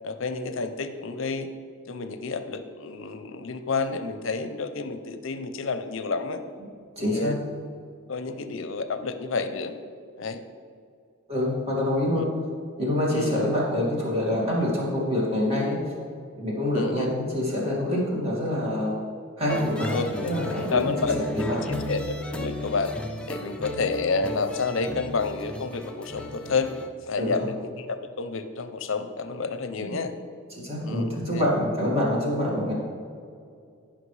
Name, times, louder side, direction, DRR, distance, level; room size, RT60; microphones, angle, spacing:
voice 1, 0.0-1.5 1.9-6.4 7.0-7.4 8.1-9.8 10.2-10.4 12.1-12.3 13.1-13.4 16.7-17.1 19.9-22.9 23.3-26.7 27.1-30.1 30.8-31.5, left 4 dB, 65° left, 10 dB, 0.6 m, -30 dB
voice 2, 7.0-7.4 11.3-12.3 12.8-15.8 16.4-18.9 19.4-21.8 27.2-27.5 29.8-30.0 30.6-32.7, left 1 dB, 30° right, -5 dB, 2.2 m, -26 dB
Campfire song, 19.5-26.9, left 1 dB, 5° left, 0.5 m, -34 dB
14.5 x 5.7 x 3.3 m, 2.4 s
head